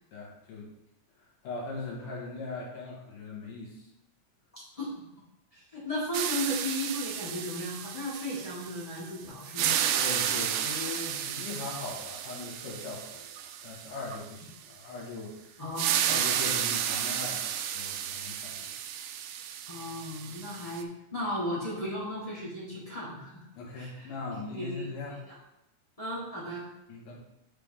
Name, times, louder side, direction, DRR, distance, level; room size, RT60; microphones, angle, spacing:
voice 1, 0.1-0.7 1.4-3.9 10.0-15.6 16.1-18.9 23.5-25.2 26.9-27.2, left 3 dB, 75° left, -4 dB, 3.1 m, -40 dB
voice 2, 4.5-4.9 5.5-9.7 15.6-16.3 19.7-23.5 23.7-24.9 26.0-26.7, left 1 dB, 20° left, -7 dB, 1.0 m, -35 dB
sound 1, 6.1-9.1 9.4-14.2 15.8-20.8, right 9 dB, 80° right, 2.0 m, -32 dB
6.7 x 3.4 x 5.2 m, 0.88 s
omnidirectional pair, 3.7 m